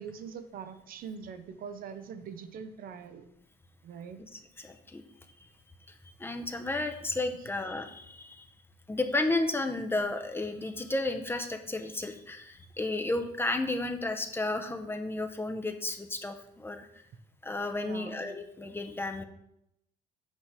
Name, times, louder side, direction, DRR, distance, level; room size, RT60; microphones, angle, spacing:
voice 1, 0.0-3.3 3.8-4.2 17.8-18.3, right 6 dB, 60° right, 10 dB, 0.7 m, -43 dB
voice 2, 4.3-5.0 6.2-8.5 8.9-16.9 17.4-19.2, left 2 dB, 15° left, 6 dB, 0.7 m, -33 dB
8.3 x 3.2 x 5.6 m, 0.78 s
cardioid pair, 110°, 17 cm